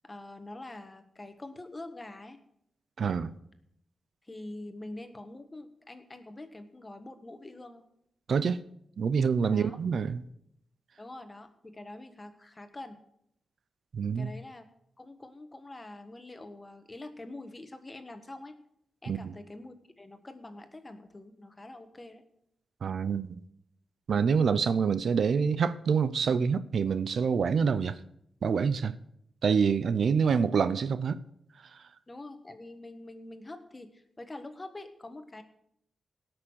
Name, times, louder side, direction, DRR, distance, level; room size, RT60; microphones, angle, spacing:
voice 1, 0.0-2.4 4.2-7.9 9.5-9.8 11.0-13.0 14.1-14.6 15.0-18.5 19.0-22.2 32.1-35.4, left 2 dB, 25° left, 1.4 m, -45 dB
voice 2, 3.0-3.3 8.3-8.6 9.0-10.2 13.9-14.3 19.1-19.3 22.8-23.4 24.1-28.0 28.4-28.9 29.4-31.2 31.7-31.8, right 6 dB, 70° right, 0.6 m, -26 dB
18.0 x 6.2 x 6.4 m
wide cardioid pair, 90°, 0 cm